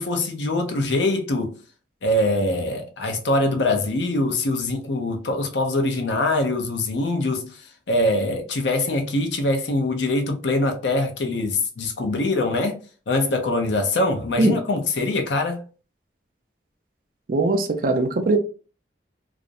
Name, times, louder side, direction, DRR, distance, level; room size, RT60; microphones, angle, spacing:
voice 1, 0.0-1.6 2.0-7.5 7.9-12.8 13.1-15.6, left 2 dB, 75° left, 0.6 m, -23 dB
voice 2, 17.3-18.4, right 2 dB, 50° right, 0.4 m, -20 dB
2.4 x 2.0 x 2.5 m
head